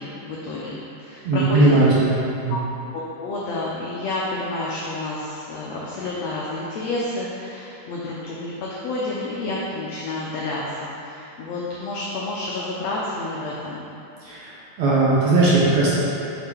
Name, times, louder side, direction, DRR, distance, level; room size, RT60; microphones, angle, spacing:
voice 1, 0.0-1.7 2.5-2.6 2.9-13.8, left 2 dB, 85° left, -5 dB, 1.5 m, -30 dB
voice 2, 1.2-2.1 2.4-2.6 14.2-14.5 14.8-16.0, right 2 dB, 65° right, -7 dB, 2.1 m, -18 dB
6.7 x 5.7 x 3.4 m, 2.9 s
omnidirectional pair, 3.9 m